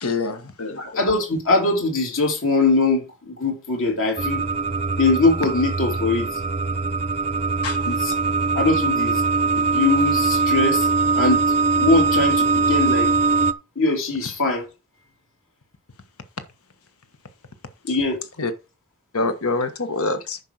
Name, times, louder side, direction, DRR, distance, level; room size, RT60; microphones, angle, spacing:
voice 1, 0.0-0.8 7.6-7.8 18.4-18.5 19.1-20.4, left 3 dB, 85° left, 1.4 m, -25 dB
voice 2, 0.8-4.4 5.0-6.4 7.9-8.1 8.5-9.2 9.6-10.9 11.1-11.4 11.8-13.1 13.7-14.6 17.9-18.2, left 3 dB, 65° left, 3.2 m, -21 dB
sound 1, 4.2-13.5, right 4 dB, 30° right, 0.5 m, -21 dB
9.9 x 5.5 x 4.8 m
head